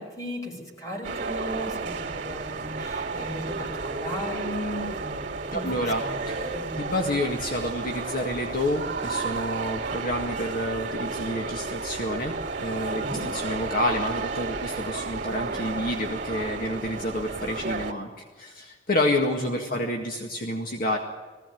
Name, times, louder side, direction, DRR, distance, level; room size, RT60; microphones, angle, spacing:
voice 1, 0.0-6.3 6.5-6.7 12.9-13.2 19.6-19.8, equal, 20° left, 1 dB, 5.7 m, -36 dB
sound 1, 1.0-17.9, right 4 dB, 45° right, 2.6 m, -32 dB
voice 2, 5.5-13.0 13.3-21.0, left 1 dB, 55° left, 2 dB, 1.9 m, -29 dB
19.5 x 16.5 x 9.4 m, 1.4 s
head